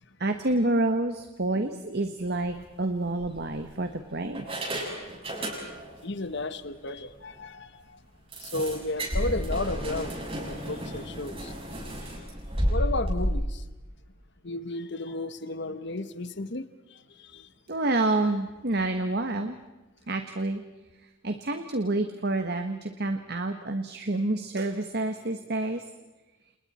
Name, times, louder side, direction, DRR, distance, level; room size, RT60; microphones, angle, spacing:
voice 1, 0.2-4.5 17.7-19.6 20.1-20.6 21.0-25.8, right 2 dB, 50° right, 7 dB, 1.5 m, -28 dB
sound 1, 2.3-2.5 3.2-3.9 4.3-6.0 6.3-6.5 6.9-7.0 7.3-7.4 8.3-13.3, equal, 30° right, 7.2 m, -32 dB
voice 2, 6.0-8.0 8.4-10.2 10.5-11.5 12.0-12.1 12.7-13.6 14.4-17.5, left 2 dB, 55° left, 12 dB, 1.3 m, -33 dB
30.0 x 29.0 x 4.4 m, 1.1 s
head